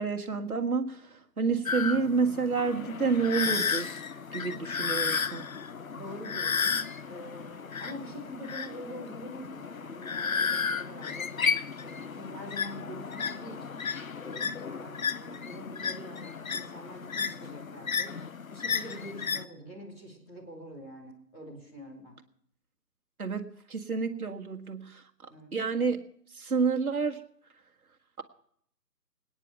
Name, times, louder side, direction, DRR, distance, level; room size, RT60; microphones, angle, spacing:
voice 1, 0.0-3.9 4.3-5.5 23.2-25.0 25.5-26.0 26.3-27.2, right 5 dB, 60° right, 4 dB, 1.7 m, -29 dB
sound 1, 1.7-19.4, left 5 dB, 55° left, 0.7 m, -33 dB
voice 2, 5.9-11.3 11.8-13.8 14.2-18.1 18.5-22.2 25.3-25.5, equal, 5° left, -6 dB, 1.3 m, -45 dB
25.5 x 9.7 x 4.5 m, 0.66 s
figure-of-eight pair, 150°, 49 cm